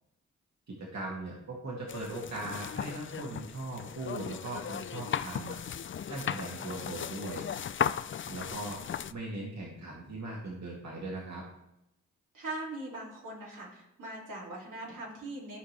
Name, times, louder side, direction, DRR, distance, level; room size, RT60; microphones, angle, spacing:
voice 1, 0.7-5.6 6.1-7.5 8.2-8.8 9.1-11.4, right 2 dB, 60° right, -3 dB, 2.1 m, -39 dB
sound 1, 1.9-9.1, left 8 dB, 40° left, 0.4 m, -36 dB
voice 2, 12.3-15.6, right 2 dB, 80° right, -4 dB, 3.0 m, -41 dB
14.0 x 4.9 x 3.3 m, 0.84 s
cardioid pair, 45°, 31 cm